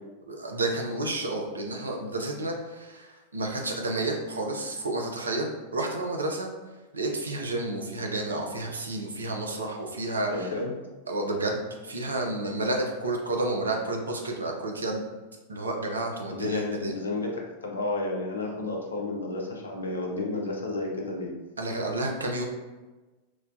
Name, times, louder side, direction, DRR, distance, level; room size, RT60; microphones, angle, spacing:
voice 1, 0.3-6.5 6.9-10.5 11.1-15.0 15.5-16.9 21.6-22.4, right 2 dB, 75° right, 1 dB, 0.4 m, -30 dB
voice 2, 10.3-10.7 16.3-17.4 17.6-21.3, left 2 dB, 70° left, 0 dB, 0.5 m, -31 dB
3.1 x 2.1 x 2.5 m, 1.2 s
figure-of-eight pair, 90°, 0 cm